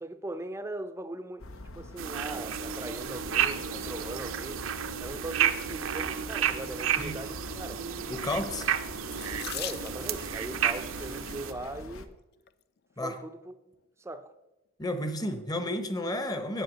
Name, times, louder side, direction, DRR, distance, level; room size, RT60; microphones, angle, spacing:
voice 1, 0.0-1.5 1.7-4.7 5.0-7.8 9.5-12.2 13.0-13.5 14.0-14.3, right 2 dB, 15° right, 0.5 m, -40 dB
sound 1, 1.4-12.1, left 1 dB, 85° left, 0.8 m, -45 dB
sound 2, 2.0-11.5, right 9 dB, 75° right, 0.6 m, -32 dB
voice 2, 8.1-8.7 13.0-13.2 14.8-16.6, left 1 dB, 20° left, 0.8 m, -32 dB
Water tap faucet / Sink (filling or washing), 9.1-10.4 11.4-11.8 12.5-12.6 12.9-13.0, left 12 dB, 50° left, 0.4 m, -40 dB
7.7 x 7.3 x 6.3 m
head